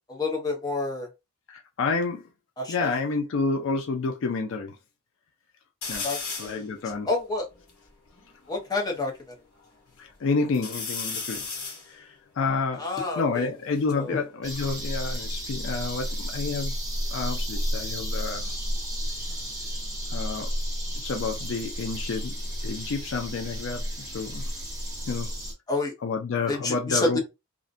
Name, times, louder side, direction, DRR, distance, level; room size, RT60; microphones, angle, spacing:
voice 1, 0.1-1.1 2.6-2.9 6.0-6.6 7.1-7.5 8.5-9.3 12.8-13.5 13.9-14.2 25.7-25.9 26.5-27.2, left 3 dB, 20° left, 0.6 m, -29 dB
voice 2, 1.5-2.2 2.7-4.8 5.9-6.1 6.4-7.1 10.0-11.5 11.9-12.9 13.1-16.8 17.1-18.5 20.1-20.5 21.0-22.3 22.6-23.8 24.1-24.5 25.1-25.3 26.0-27.2, left 4 dB, 60° left, 0.4 m, -29 dB
sound 1, 5.8-6.6 7.2-7.3 7.5-9.0 9.5-10.1 10.5-13.9 14.8-16.8 17.0-17.5 19.1-21.7 22.1-22.9, left 4 dB, 85° left, 0.8 m, -39 dB
sound 2, 14.4-25.5, equal, 15° right, 0.9 m, -32 dB
2.4 x 2.1 x 2.5 m
head